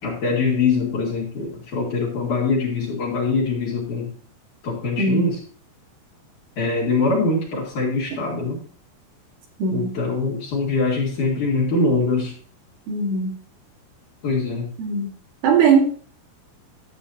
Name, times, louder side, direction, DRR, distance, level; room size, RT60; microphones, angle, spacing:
voice 1, 0.0-4.1 4.6-5.4 6.6-8.6 9.7-12.3 14.2-14.7, left 3 dB, 50° left, -5 dB, 2.8 m, -23 dB
voice 2, 12.9-13.4 14.8-15.1 15.4-15.9, right 5 dB, 75° right, 1 dB, 3.9 m, -19 dB
12.0 x 8.1 x 2.7 m, 0.43 s
omnidirectional pair, 5.5 m